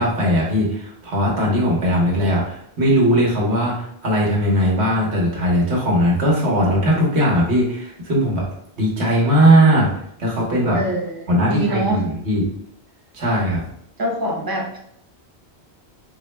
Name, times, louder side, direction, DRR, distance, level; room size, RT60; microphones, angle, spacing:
voice 1, 0.0-8.4 8.8-9.9 10.2-10.8 11.3-12.5 13.1-13.6, equal, 80° right, -3 dB, 1.3 m, -18 dB
voice 2, 10.7-12.0 14.0-14.8, right 1 dB, 30° right, 0 dB, 0.5 m, -24 dB
4.3 x 2.1 x 3.1 m, 0.70 s
omnidirectional pair, 1.1 m